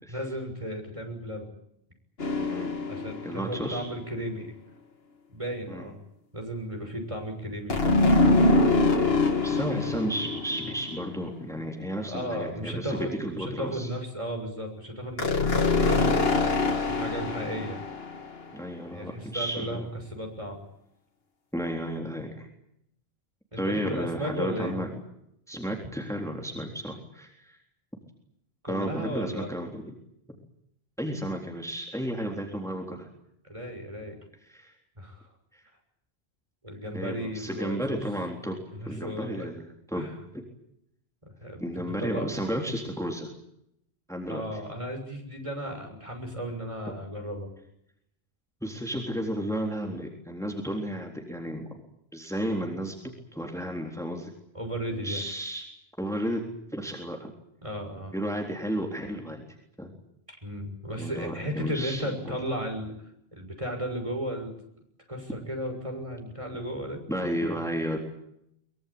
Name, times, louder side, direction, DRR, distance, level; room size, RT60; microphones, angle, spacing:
voice 1, 0.1-1.5 2.9-4.5 5.3-6.0 6.3-8.0 12.0-16.5 16.9-17.8 18.9-20.6 23.5-24.8 28.6-29.5 33.4-34.2 35.0-35.3 36.6-38.0 38.7-39.5 39.9-40.1 41.2-42.3 44.3-47.5 54.5-55.2 57.6-58.1 60.4-62.9 63.3-64.5 65.1-67.0, equal, 30° right, 4 dB, 6.7 m, -35 dB
sound 1, 2.2-3.8 7.7-11.4 15.2-18.5, left 2 dB, 70° left, 2.2 m, -24 dB
voice 2, 2.4-2.7 3.2-3.9 5.7-5.8 8.3-8.6 9.4-13.9 18.5-19.8 21.5-22.5 23.6-24.9 25.5-27.6 28.7-29.9 31.0-33.1 34.5-34.7 35.5-35.6 36.9-38.6 38.8-40.1 41.6-43.3 44.1-44.4 48.6-51.7 52.1-52.9 53.3-54.3 55.0-55.6 56.0-56.4 56.7-57.3 58.1-59.4 59.8-59.9 61.0-62.4 67.1-68.0, equal, 5° left, 1 dB, 3.8 m, -33 dB
24.0 x 23.0 x 8.7 m, 0.77 s
omnidirectional pair, 1.0 m